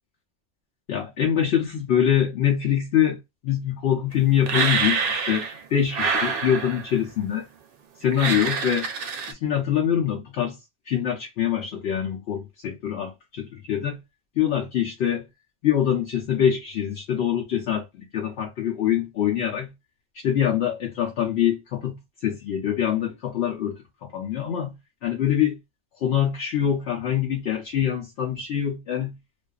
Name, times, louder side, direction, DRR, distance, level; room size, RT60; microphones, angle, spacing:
voice 1, 0.9-3.2 3.4-7.5 8.0-8.9 9.3-10.6 10.9-14.0 14.4-15.3 15.6-19.7 20.1-24.8 25.0-25.6 26.0-29.2, left 9 dB, 70° left, 0.8 m, -24 dB
sound 1, 4.5-5.6 5.9-7.0 8.1-9.3, right 5 dB, 60° right, 0.7 m, -26 dB
2.4 x 2.3 x 2.3 m
omnidirectional pair, 1.2 m